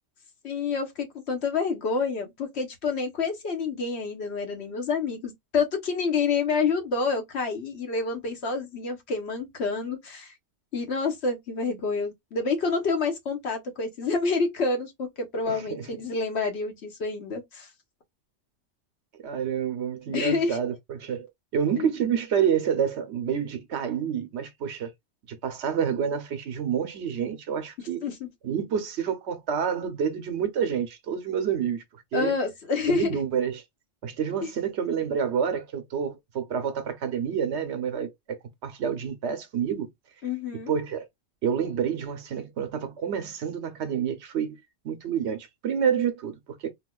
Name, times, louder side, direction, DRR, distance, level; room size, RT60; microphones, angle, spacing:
voice 1, 0.4-10.3 10.7-17.7 20.1-20.6 21.8-21.9 28.0-28.3 32.1-33.2 34.4-34.5 40.2-40.7, left 4 dB, 65° left, 1.2 m, -28 dB
voice 2, 15.5-15.9 19.2-21.3 21.5-24.9 25.3-28.0 28.4-32.3 32.9-33.6 34.0-38.4 38.6-39.9 40.7-41.1 41.4-44.6 44.8-46.7, right 7 dB, 75° right, 1.0 m, -28 dB
4.2 x 2.3 x 2.2 m
omnidirectional pair, 1.2 m